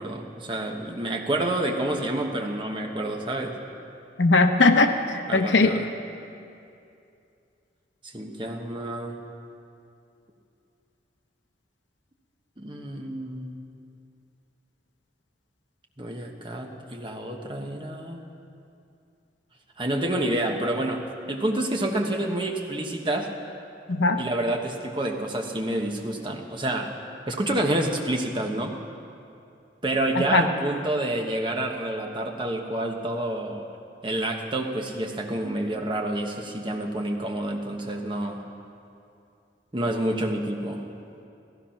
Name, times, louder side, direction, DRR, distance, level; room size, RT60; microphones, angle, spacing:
voice 1, 0.0-3.5 5.3-5.8 8.1-9.2 12.6-13.6 16.0-18.2 19.8-21.0 21.3-23.3 24.2-26.9 27.3-28.7 29.8-33.7 34.0-38.4 39.7-40.8, right 1 dB, 25° right, 2 dB, 1.2 m, -28 dB
voice 2, 4.2-5.7 23.9-24.2 30.2-30.4, left 3 dB, 80° left, 6 dB, 0.9 m, -19 dB
15.5 x 15.5 x 5.8 m, 2.6 s
head